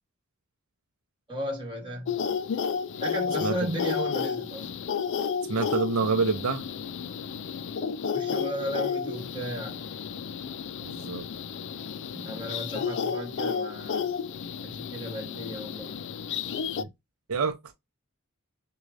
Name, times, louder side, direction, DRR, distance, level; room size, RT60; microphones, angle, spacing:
voice 1, 1.3-2.2 3.0-4.7 8.1-9.9 12.1-14.1 14.6-16.0, equal, 25° right, 1.8 m, -35 dB
sound 1, 2.1-16.8, left 6 dB, 55° left, 0.4 m, -32 dB
voice 2, 5.5-6.7 10.8-11.3 16.8-16.9 17.3-17.7, right 4 dB, 75° right, 0.6 m, -27 dB
6.2 x 2.3 x 2.5 m
head